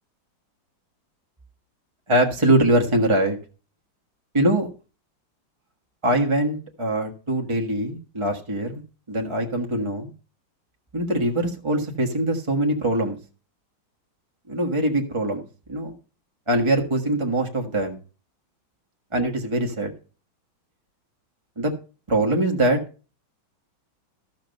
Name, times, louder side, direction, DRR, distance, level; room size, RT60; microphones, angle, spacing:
voice 1, 2.1-3.4 4.3-4.7 6.0-8.8 9.1-10.1 10.9-13.2 14.5-15.9 16.5-18.0 19.1-19.9 21.6-21.7 22.1-22.8, right 1 dB, 15° right, 2 dB, 1.2 m, -23 dB
13.5 x 6.4 x 5.3 m, 0.35 s
omnidirectional pair, 2.2 m